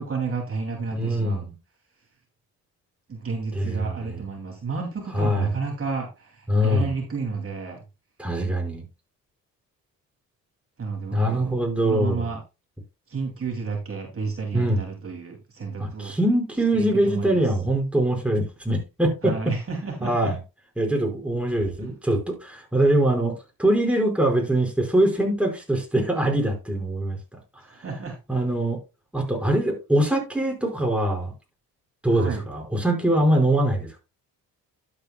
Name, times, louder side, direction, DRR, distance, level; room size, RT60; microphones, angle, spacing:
voice 1, 0.0-1.5 3.1-7.8 10.8-12.4 13.1-16.1 16.7-17.4 19.2-20.3 21.8-21.9 27.7-28.2 32.1-32.4, right 4 dB, 40° right, 2.5 m, -31 dB
voice 2, 0.9-1.5 3.5-4.2 5.1-5.5 6.5-7.0 8.2-8.8 11.1-12.3 14.5-14.8 15.8-19.3 20.0-20.4 20.8-27.2 28.3-28.8 29.1-31.3 32.0-34.0, right 1 dB, 5° right, 4.8 m, -23 dB
11.5 x 8.2 x 2.2 m
cardioid pair, 80°, 35 cm